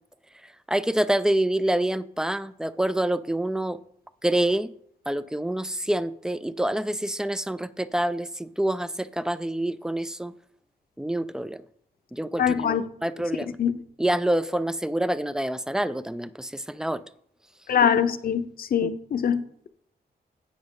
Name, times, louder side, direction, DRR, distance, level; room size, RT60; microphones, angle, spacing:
voice 1, 0.7-3.8 4.2-4.7 5.1-10.3 11.0-11.6 12.1-13.6 14.0-17.0 18.8-18.9, right 1 dB, 5° right, 0.3 m, -27 dB
voice 2, 12.4-12.8 13.6-13.7 17.7-19.7, left 8 dB, 65° left, 0.6 m, -23 dB
10.5 x 7.9 x 3.7 m
wide cardioid pair, 160°, 17 cm